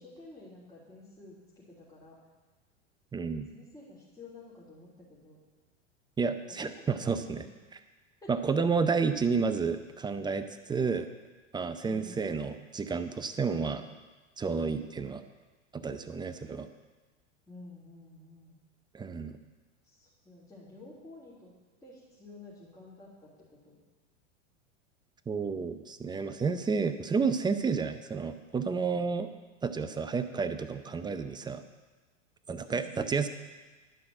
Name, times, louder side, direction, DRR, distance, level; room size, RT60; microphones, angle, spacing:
voice 1, 0.0-2.2 3.5-5.4 6.6-7.4 8.2-8.3 11.8-12.4 17.5-18.5 19.8-21.5 21.8-23.8 32.7-32.9, left 2 dB, 10° left, -9 dB, 3.3 m, -51 dB
voice 2, 3.1-3.5 6.2-7.4 8.3-11.1 11.5-13.9 14.4-15.2 15.7-16.7 18.9-19.4 25.3-29.3 29.6-31.6 32.5-33.3, right 5 dB, 10° right, 9 dB, 0.5 m, -31 dB
11.0 x 5.8 x 7.7 m, 1.3 s
hypercardioid pair, 105°, 38 cm